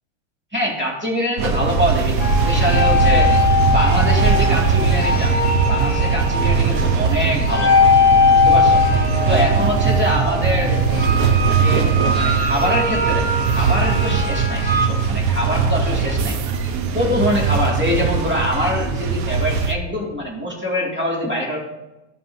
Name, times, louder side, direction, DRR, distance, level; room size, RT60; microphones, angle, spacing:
voice 1, 0.5-3.3 3.6-5.3 5.7-7.7 8.3-8.8 9.3-10.8 11.6-11.9 12.2-16.4 16.6-21.6, equal, 5° right, -4 dB, 1.8 m, -24 dB
sound 1, 1.4-19.7, right 5 dB, 70° right, 0.8 m, -20 dB
sound 2, 2.2-14.9, left 4 dB, 25° left, 1.1 m, -20 dB
16.0 x 5.5 x 2.7 m, 0.99 s
omnidirectional pair, 2.3 m